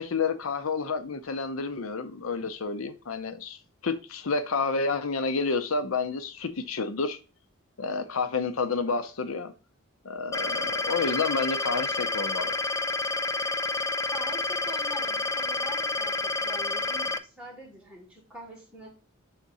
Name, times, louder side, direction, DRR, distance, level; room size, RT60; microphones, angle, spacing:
voice 1, 0.0-7.2 7.8-9.5 10.0-12.5, left 4 dB, 85° left, 0.7 m, -30 dB
sound 1, 10.3-17.2, left 3 dB, 15° left, 0.3 m, -29 dB
voice 2, 14.1-18.9, right 1 dB, 5° right, 2.3 m, -44 dB
7.4 x 3.6 x 4.1 m
head